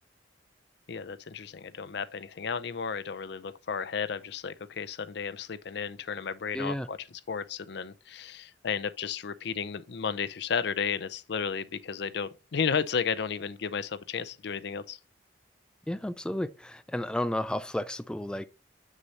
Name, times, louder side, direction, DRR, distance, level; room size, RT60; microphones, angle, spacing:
voice 1, 0.9-7.0 7.3-15.0, left 6 dB, 70° left, 0.5 m, -33 dB
voice 2, 6.5-6.9 15.9-18.5, left 1 dB, 5° left, 0.3 m, -32 dB
7.5 x 6.5 x 2.8 m
head